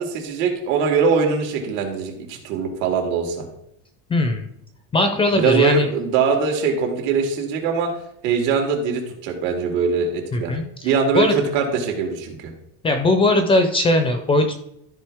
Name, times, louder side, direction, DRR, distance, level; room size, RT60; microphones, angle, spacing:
voice 1, 0.0-3.4 5.3-7.9 8.2-10.5 10.8-12.5, right 5 dB, 80° right, 2 dB, 2.5 m, -22 dB
voice 2, 4.1-4.5 4.9-5.9 10.3-11.3 12.8-14.5, left 2 dB, 15° left, 6 dB, 0.4 m, -19 dB
13.5 x 5.0 x 3.5 m, 0.78 s
cardioid pair, 175°, 40 cm